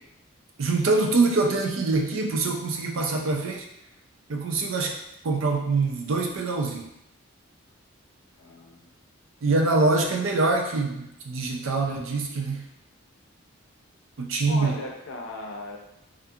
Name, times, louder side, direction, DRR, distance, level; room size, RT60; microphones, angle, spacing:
voice 1, 0.6-3.7 4.3-5.0 5.2-6.9 9.4-12.7 14.2-14.8, right 3 dB, 75° right, 2 dB, 0.4 m, -24 dB
voice 2, 8.4-8.9 14.5-15.8, left 2 dB, 75° left, 0 dB, 0.5 m, -37 dB
2.7 x 2.4 x 2.3 m, 0.83 s
head